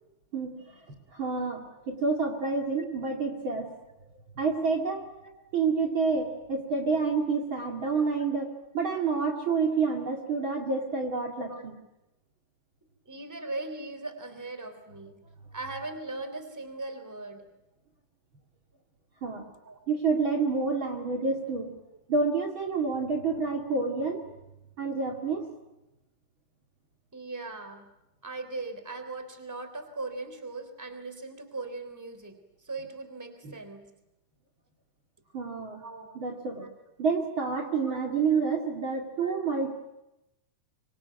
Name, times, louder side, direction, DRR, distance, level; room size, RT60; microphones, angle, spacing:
voice 1, 0.3-0.8 1.1-3.7 4.4-5.1 5.5-11.8 19.2-19.4 19.9-21.7 22.1-24.2 24.8-25.5 33.4-33.5 35.3-35.8 36.1-36.7 37.0-39.7, right 4 dB, 45° right, 2 dB, 3.0 m, -28 dB
voice 2, 13.0-15.2 15.5-17.5 19.6-19.8 27.1-27.9 28.2-32.4 32.6-33.9 35.8-36.1 36.6-36.7 37.8-38.0 38.3-38.4 39.2-39.4, right 2 dB, 5° right, 8 dB, 3.3 m, -39 dB
26.0 x 25.0 x 9.4 m, 0.91 s
omnidirectional pair, 3.4 m